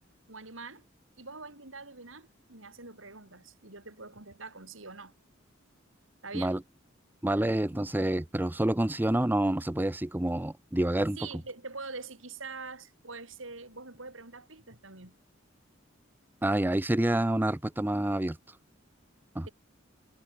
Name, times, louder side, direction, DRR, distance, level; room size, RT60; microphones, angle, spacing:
voice 1, 0.3-0.8 1.2-5.1 6.2-6.6 7.7-7.8 11.2-15.1, right 4 dB, 80° right, 5.9 m, -44 dB
voice 2, 7.2-11.2 16.4-18.4 19.4-19.5, right 1 dB, 10° right, 0.6 m, -28 dB
head